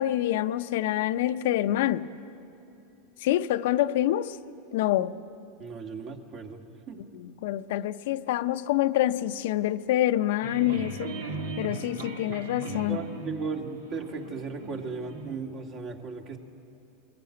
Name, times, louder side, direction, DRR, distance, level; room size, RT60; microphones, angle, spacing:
voice 1, 0.0-2.1 3.2-4.4 4.7-5.2 7.1-11.1 11.6-13.0, left 13 dB, 70° left, 11 dB, 0.6 m, -26 dB
voice 2, 5.6-6.6 6.9-7.0 12.9-16.4, right 4 dB, 45° right, 3 dB, 2.2 m, -36 dB
sound 1, 10.4-15.4, right 2 dB, 90° right, 1.8 m, -38 dB
21.5 x 15.5 x 8.6 m, 2.9 s
hypercardioid pair, 105°, 0 cm